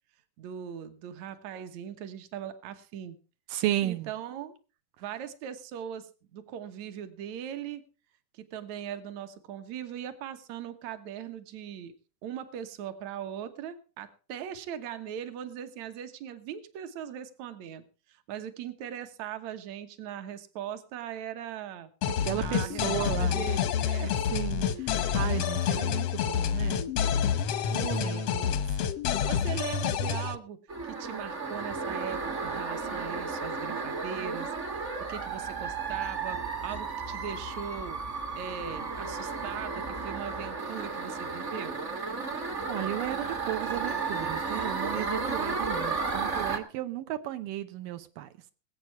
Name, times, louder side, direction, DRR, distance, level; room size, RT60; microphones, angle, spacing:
voice 1, 0.4-3.2 3.8-4.5 5.0-7.8 8.3-11.9 12.2-21.9 22.4-24.2 28.0-28.3 29.2-30.6 31.0-38.0 38.4-41.8, right 9 dB, 65° right, 9 dB, 2.3 m, -40 dB
voice 2, 3.5-4.1 22.2-23.4 24.3-26.9 27.7-28.6 42.7-48.3, right 14 dB, 85° right, 9 dB, 2.5 m, -34 dB
sound 1, 22.0-30.3, left 8 dB, 70° left, 1.4 m, -28 dB
sound 2, 30.7-46.6, right 4 dB, 40° right, 1.0 m, -33 dB
21.0 x 8.3 x 4.7 m, 0.36 s
omnidirectional pair, 3.8 m